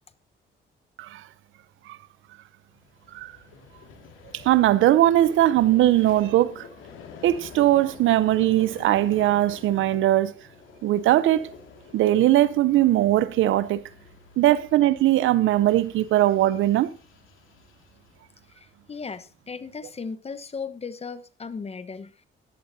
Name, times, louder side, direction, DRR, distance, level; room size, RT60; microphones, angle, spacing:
Vehicle, 2.7-19.0, left 6 dB, 90° left, 2.3 m, -48 dB
voice 1, 4.3-6.7 7.2-10.3 10.8-11.5 11.9-13.8 14.4-16.9, right 14 dB, 80° right, 0.7 m, -20 dB
voice 2, 18.6-22.1, left 5 dB, 30° left, 1.1 m, -36 dB
14.5 x 11.5 x 2.8 m
cardioid pair, 90°, 20 cm